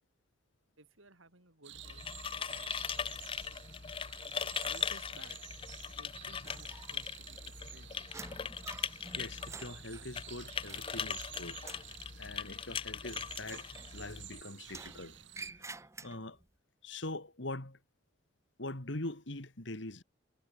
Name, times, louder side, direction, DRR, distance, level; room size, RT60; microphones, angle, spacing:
voice 1, 0.8-2.1 2.3-3.2 4.1-5.4 6.0-8.1, right 2 dB, 75° right, 5.9 m, -59 dB
sound 1, 1.6-15.5, right 13 dB, 60° right, 3.5 m, -52 dB
sound 2, 1.7-14.4, left 7 dB, 25° left, 0.5 m, -40 dB
sound 3, 6.4-7.2 7.5-11.2 11.5-12.0 13.4-14.3 14.6-16.5, right 3 dB, 15° right, 0.8 m, -50 dB
voice 2, 9.2-11.6 11.9-13.7 13.9-15.2 16.0-16.4 16.8-17.8 18.6-20.0, left 2 dB, 60° left, 2.5 m, -43 dB
head